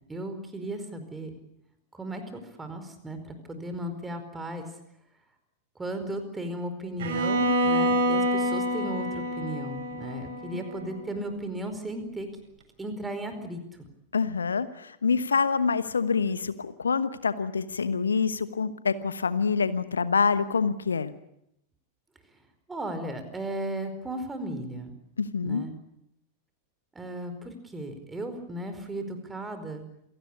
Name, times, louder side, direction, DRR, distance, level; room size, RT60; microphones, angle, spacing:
voice 1, 0.1-1.4 1.9-4.7 5.8-12.3 12.8-13.6 22.7-24.9 25.4-25.7 26.9-29.8, right 1 dB, 10° right, 8 dB, 4.7 m, -35 dB
Bowed string instrument, 7.0-11.0, equal, 60° right, 6.9 m, -27 dB
voice 2, 14.1-21.1 25.2-25.6, left 5 dB, 75° left, 14 dB, 1.1 m, -26 dB
27.5 x 18.0 x 8.6 m, 0.79 s
figure-of-eight pair, 90°, 0 cm